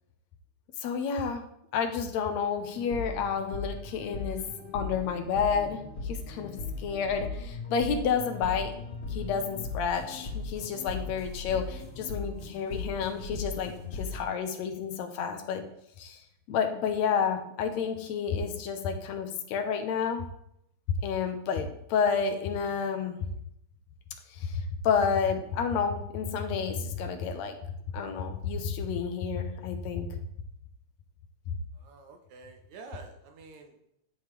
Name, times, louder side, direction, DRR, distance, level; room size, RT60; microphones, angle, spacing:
voice 1, 0.8-1.4 1.7-4.4 4.7-8.7 9.1-15.6 16.0-16.2 16.5-20.3 21.0-23.3 24.3-27.6 27.9-30.1 31.5-31.6, left 6 dB, 75° left, 5 dB, 1.9 m, -30 dB
sound 1, 2.7-14.2, left 3 dB, 35° left, 3.8 m, -38 dB
voice 2, 31.7-33.9, right 4 dB, 75° right, 4 dB, 2.1 m, -49 dB
11.0 x 5.0 x 3.2 m, 0.75 s
omnidirectional pair, 3.4 m